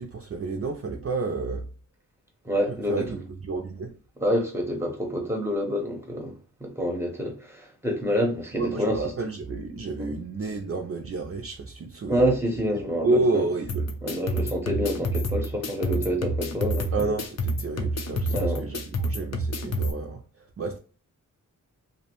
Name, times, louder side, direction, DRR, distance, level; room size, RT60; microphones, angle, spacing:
voice 1, 0.0-1.6 2.7-4.0 8.5-12.3 12.7-14.0 16.9-20.8, right 3 dB, 45° right, 0.4 m, -30 dB
voice 2, 2.4-3.0 4.2-6.4 6.6-9.0 10.0-10.1 12.1-13.2 14.0-16.9 18.2-18.7, equal, 10° right, 0.7 m, -27 dB
sound 1, 13.7-19.9, right 1 dB, 50° left, 0.5 m, -28 dB
2.6 x 2.1 x 2.9 m
wide cardioid pair, 75°, 33 cm